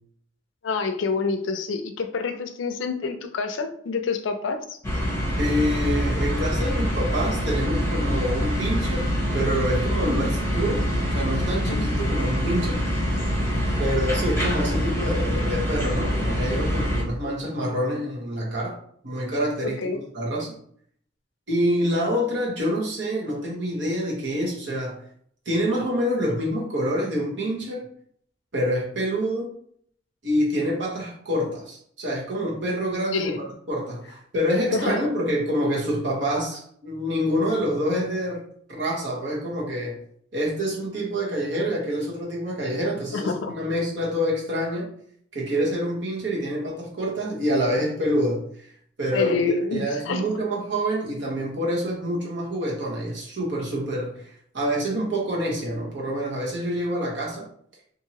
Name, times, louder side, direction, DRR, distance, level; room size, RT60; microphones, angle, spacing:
voice 1, 0.6-4.8 10.1-10.4 11.7-11.9 19.6-20.0 33.1-33.4 34.7-35.0 43.1-43.5 49.1-50.3, left 4 dB, 80° left, 7 dB, 0.4 m, -27 dB
sound 1, 4.8-17.0, equal, 15° left, 0.9 m, -25 dB
voice 2, 5.4-10.3 10.5-10.9 11.1-13.0 13.8-18.8 19.0-20.5 21.5-25.0 25.4-27.9 28.5-29.5 30.2-38.4 38.7-40.0 40.3-44.9 45.3-48.7 49.0-57.5, equal, 65° right, -4 dB, 1.1 m, -26 dB
2.7 x 2.6 x 2.9 m, 0.63 s
head